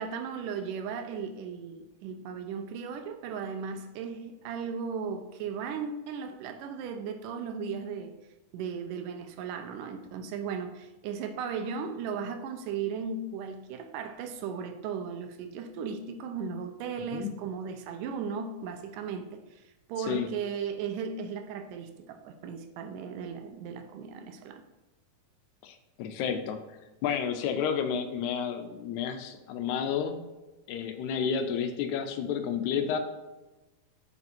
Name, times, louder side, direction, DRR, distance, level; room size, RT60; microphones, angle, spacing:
voice 1, 0.0-8.1 8.5-19.6 19.9-24.6, right 6 dB, 80° right, 6 dB, 2.2 m, -36 dB
voice 2, 25.6-26.6 27.0-30.2 30.7-33.0, left 7 dB, 75° left, 7 dB, 1.9 m, -31 dB
6.8 x 5.2 x 4.4 m, 1.1 s
omnidirectional pair, 3.9 m